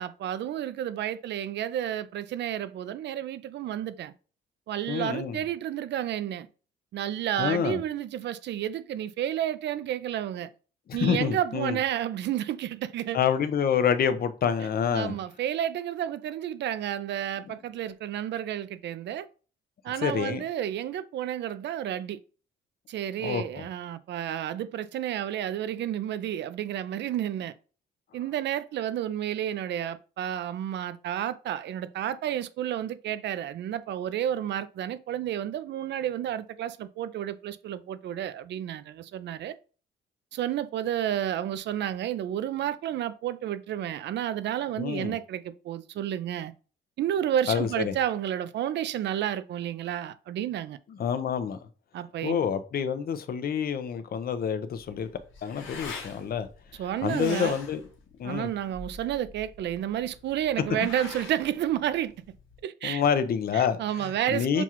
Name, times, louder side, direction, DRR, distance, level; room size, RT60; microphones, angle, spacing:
voice 1, 0.0-4.1 4.7-6.5 6.9-10.5 10.9-13.2 14.9-19.3 19.8-22.2 22.9-27.5 28.1-39.5 40.3-46.5 47.0-50.8 51.9-52.4 56.8-57.6 58.2-62.1 62.6-63.0 63.5-64.6, right 11 dB, 60° right, 0.4 m, -31 dB
voice 2, 4.9-5.4 7.4-7.8 11.0-11.8 13.1-15.1 20.0-20.4 23.2-23.7 44.8-45.2 47.5-48.0 50.9-51.6 52.2-55.1 55.4-56.5 57.0-57.8 58.2-58.5 62.8-64.6, left 7 dB, 50° left, 0.6 m, -27 dB
sound 1, 54.7-62.6, left 4 dB, 80° left, 1.2 m, -44 dB
6.0 x 2.4 x 2.9 m
cardioid pair, 90°, 20 cm